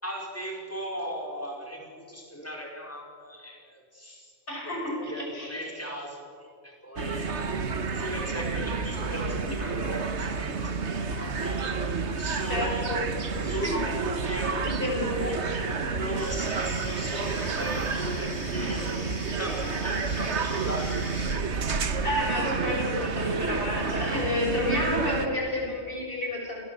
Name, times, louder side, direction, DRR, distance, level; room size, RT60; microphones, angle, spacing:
voice 1, 0.0-4.3 4.6-12.9 13.4-14.7 15.2-15.4 16.0-21.2, equal, 10° left, 0 dB, 4.9 m, -37 dB
voice 2, 4.5-5.6 12.5-13.0 14.8-15.7 17.4-17.6 22.0-26.6, left 1 dB, 50° left, -2 dB, 7.2 m, -30 dB
sound 1, 7.0-25.3, right 4 dB, 70° right, 1.6 m, -30 dB
sound 2, 16.2-21.4, left 1 dB, 30° left, 7.0 m, -43 dB
28.5 x 19.0 x 8.2 m, 2.2 s
omnidirectional pair, 1.2 m